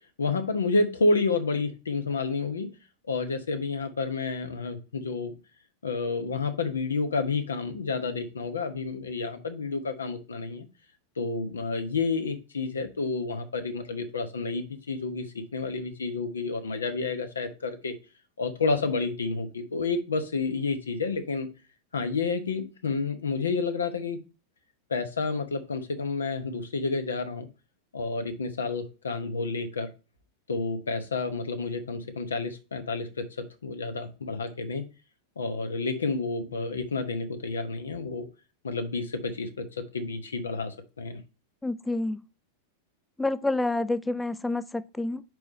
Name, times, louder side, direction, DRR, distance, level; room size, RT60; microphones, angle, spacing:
voice 1, 0.2-2.7 3.1-5.3 5.8-10.7 11.2-17.9 18.4-21.5 21.9-24.2 24.9-27.5 27.9-29.9 30.5-34.8 35.4-38.3 38.6-41.2, left 3 dB, 70° left, 1.0 m, -30 dB
voice 2, 41.6-42.2 43.2-45.2, left 2 dB, 5° left, 0.4 m, -28 dB
4.8 x 4.8 x 5.2 m
figure-of-eight pair, 90°, 0 cm